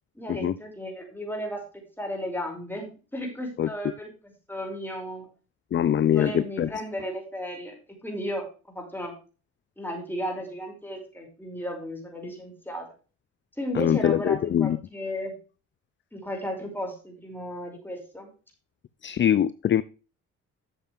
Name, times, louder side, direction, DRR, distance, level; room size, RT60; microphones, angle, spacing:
voice 1, 0.2-5.3 6.1-7.7 8.0-9.1 9.8-12.9 13.6-15.3 16.1-18.3, equal, 5° left, 0 dB, 5.3 m, -34 dB
voice 2, 5.7-6.7 13.7-14.8 19.0-19.8, left 10 dB, 40° left, 16 dB, 0.5 m, -23 dB
12.0 x 7.3 x 3.5 m, 0.35 s
cardioid pair, 90°, 30 cm